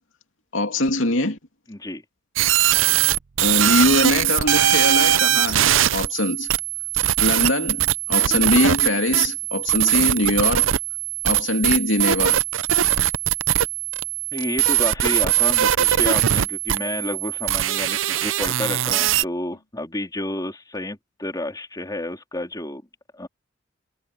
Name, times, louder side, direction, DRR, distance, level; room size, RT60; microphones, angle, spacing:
voice 1, 0.5-1.4 3.4-6.5 7.2-10.7 11.2-12.4, left 1 dB, 85° left, 2.7 m, -22 dB
voice 2, 1.7-2.0 14.3-22.8 23.1-23.3, left 1 dB, 20° left, 3.7 m, -30 dB
sound 1, 2.4-19.2, right 11 dB, 80° right, 0.6 m, -21 dB
head